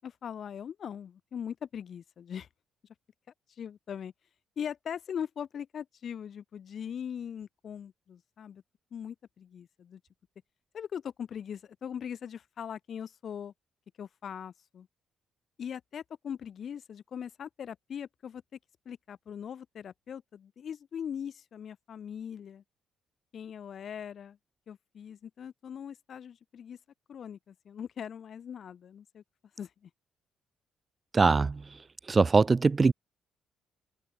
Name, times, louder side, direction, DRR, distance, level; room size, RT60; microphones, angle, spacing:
voice 1, 0.0-2.5 3.6-4.1 4.6-8.6 8.9-10.0 10.7-13.5 14.0-14.9 15.6-18.6 18.9-22.6 23.3-24.4 24.7-26.8 27.1-29.2 29.6-29.9, left 8 dB, 55° left, 7.7 m, -40 dB
voice 2, 31.1-31.6 32.1-32.9, right 4 dB, 30° right, 0.9 m, -22 dB
cardioid pair, 90°, 0 cm